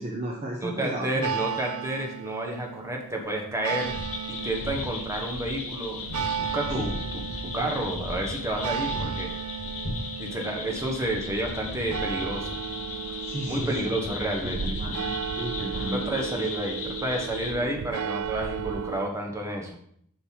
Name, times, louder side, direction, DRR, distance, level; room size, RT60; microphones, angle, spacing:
voice 1, 0.0-1.3 6.7-7.2 7.6-7.7 13.2-13.9 14.4-16.4, right 1 dB, 30° right, -1 dB, 0.9 m, -35 dB
voice 2, 0.6-3.9 4.3-6.0 6.4-7.2 7.5-9.3 10.2-12.6 13.5-14.8 15.9-19.8, right 1 dB, 15° right, 0 dB, 1.3 m, -30 dB
sound 1, 1.2-19.1, right 8 dB, 75° right, 0.4 m, -35 dB
sound 2, 3.8-17.5, left 3 dB, 75° left, 2.2 m, -36 dB
7.1 x 5.5 x 4.6 m, 0.66 s
head